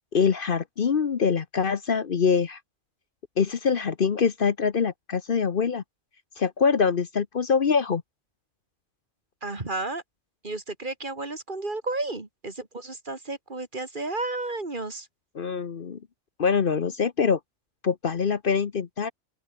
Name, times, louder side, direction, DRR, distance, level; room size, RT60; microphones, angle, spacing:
voice 1, 0.1-2.6 3.4-5.8 6.4-8.0 15.3-16.0 16.4-17.4 17.8-19.1, left 6 dB, 50° left, 1.1 m, -24 dB
voice 2, 9.4-10.0 10.4-15.1, right 2 dB, 45° right, 2.8 m, -32 dB
open air
omnidirectional pair, 1.2 m